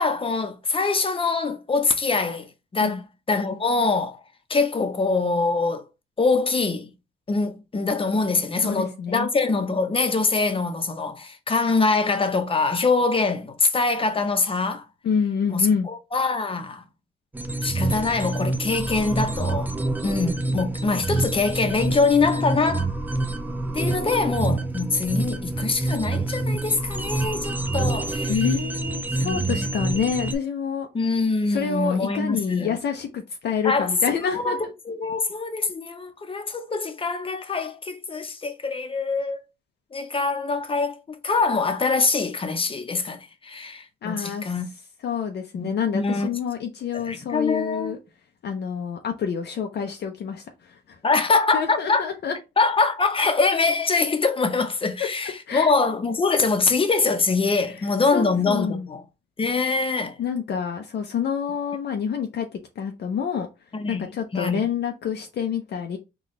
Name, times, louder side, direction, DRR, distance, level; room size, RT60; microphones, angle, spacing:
voice 1, 0.0-4.2 4.5-5.8 6.2-6.9 7.3-14.8 15.5-16.8 17.6-19.7 20.0-22.9 23.7-28.4 29.2-29.7 30.9-32.8 33.6-33.9 34.3-39.4 39.9-41.0 41.2-44.7 45.5-45.7 45.9-46.3 46.9-48.0 51.0-52.1 52.6-59.0 59.4-60.2 63.7-64.1 64.3-64.6, left 4 dB, 25° left, 0.8 m, -24 dB
voice 2, 8.6-9.3 15.0-15.9 28.3-30.9 31.5-34.7 44.0-44.5 45.0-48.0 48.4-51.0 51.5-52.4 55.5-55.7 58.1-58.9 60.2-63.5 63.9-66.0, left 7 dB, 60° left, 0.6 m, -27 dB
sound 1, 17.3-30.4, right 2 dB, 10° right, 0.4 m, -27 dB
4.0 x 2.4 x 3.1 m
cardioid pair, 90°, 20 cm